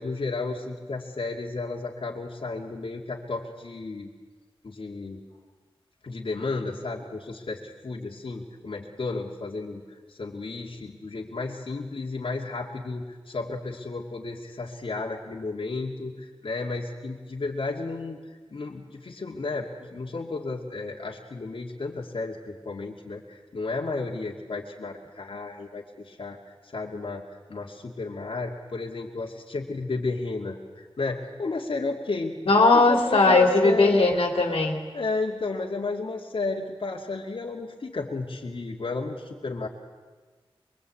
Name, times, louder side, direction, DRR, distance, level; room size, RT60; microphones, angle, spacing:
voice 1, 0.0-4.1 4.6-5.3 6.0-9.8 10.1-18.2 18.5-27.2 27.5-32.4 32.7-34.0 34.9-39.7, left 3 dB, 65° left, -2 dB, 2.6 m, -33 dB
voice 2, 32.5-34.8, left 3 dB, 85° left, 2 dB, 3.0 m, -19 dB
24.0 x 23.5 x 8.7 m, 1.4 s
wide cardioid pair, 90°, 10 cm